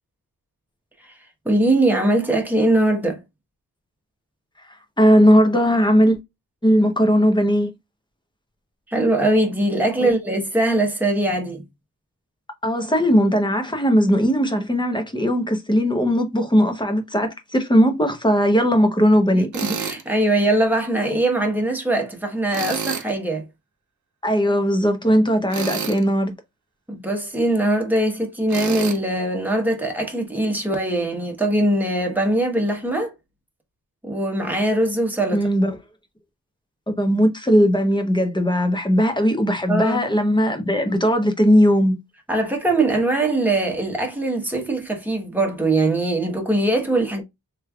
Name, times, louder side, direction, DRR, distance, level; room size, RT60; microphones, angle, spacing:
voice 1, 1.4-3.2 8.9-11.6 19.3-23.4 26.9-33.1 34.0-35.5 39.7-40.0 42.3-47.2, right 1 dB, 5° right, 1.1 m, -21 dB
voice 2, 5.0-6.2 6.6-7.7 10.0-10.1 12.6-19.5 24.2-26.4 35.3-35.7 36.9-42.0, equal, 15° left, 0.8 m, -18 dB
Tools, 19.5-20.0 22.5-23.1 25.5-26.0 28.5-29.0, right 6 dB, 60° right, 0.6 m, -28 dB
3.3 x 3.2 x 2.3 m
wide cardioid pair, 105°, 34 cm